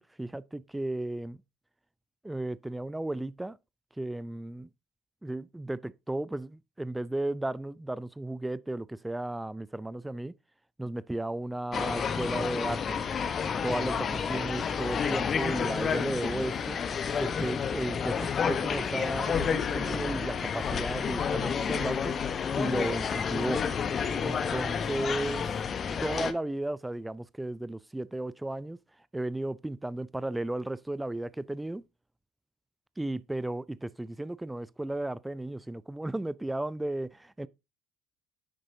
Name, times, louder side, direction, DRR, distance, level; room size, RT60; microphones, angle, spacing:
voice 1, 0.2-1.4 2.2-3.6 4.0-4.7 5.2-10.3 10.8-13.0 13.6-16.8 17.2-22.1 22.6-23.6 24.2-25.5 26.0-28.8 29.1-31.8 33.0-37.5, right 1 dB, 10° right, 0.4 m, -34 dB
Gibraltar Main Street, 11.7-26.3, left 6 dB, 40° left, 0.9 m, -30 dB
10.0 x 7.5 x 2.7 m
figure-of-eight pair, 55°, 0 cm